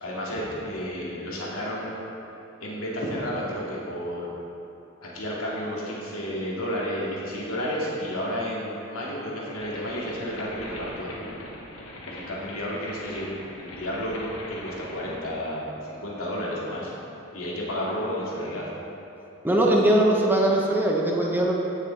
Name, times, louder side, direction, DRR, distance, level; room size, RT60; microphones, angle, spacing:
voice 1, 0.0-2.0 2.6-4.3 5.0-11.4 12.0-13.3 13.6-16.9 17.3-18.7, equal, 90° left, -5 dB, 2.4 m, -31 dB
sound 1, 9.6-15.2, left 1 dB, 70° left, 1.5 m, -41 dB
voice 2, 19.4-21.5, right 1 dB, 10° right, -2 dB, 1.0 m, -21 dB
15.5 x 6.8 x 3.4 m, 2.8 s
head